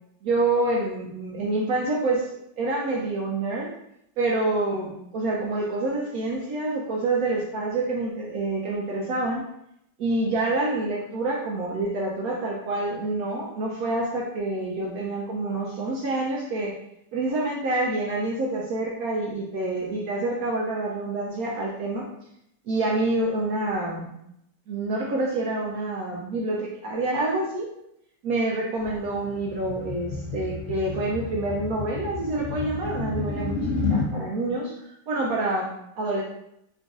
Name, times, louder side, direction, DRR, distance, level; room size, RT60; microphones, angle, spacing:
voice 1, 0.2-3.7 4.2-9.4 10.0-16.8 17.1-22.1 22.7-24.1 24.7-27.7 28.2-33.6 33.9-34.7 35.1-36.2, right 2 dB, 70° right, -2 dB, 1.0 m, -27 dB
sound 1, 28.8-34.1, left 3 dB, 60° left, 0.8 m, -30 dB
3.8 x 2.5 x 3.5 m, 0.77 s
omnidirectional pair, 1.8 m